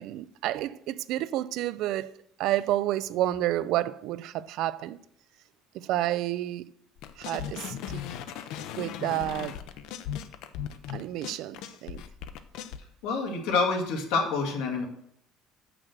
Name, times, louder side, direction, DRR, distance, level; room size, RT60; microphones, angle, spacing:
voice 1, 0.0-2.1 2.4-5.0 5.7-6.7 7.2-8.0 8.8-9.6 10.9-12.0, right 14 dB, 65° right, 0.4 m, -30 dB
sound 1, 7.0-12.8, left 9 dB, 70° left, 0.6 m, -37 dB
voice 2, 13.0-14.9, left 4 dB, 90° left, 1.8 m, -27 dB
6.4 x 6.0 x 6.2 m
cardioid pair, 150°, 0 cm